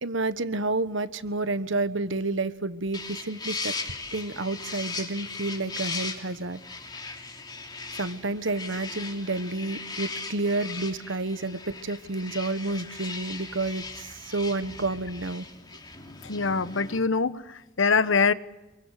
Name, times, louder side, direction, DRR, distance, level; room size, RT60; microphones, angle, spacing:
voice 1, 0.0-3.7 4.1-6.6 7.9-15.4, right 2 dB, 70° right, 1.4 m, -30 dB
sound 1, 2.9-17.0, left 4 dB, 20° left, 3.0 m, -38 dB
voice 2, 16.2-18.3, left 4 dB, 70° left, 1.2 m, -24 dB
27.5 x 23.5 x 8.2 m
head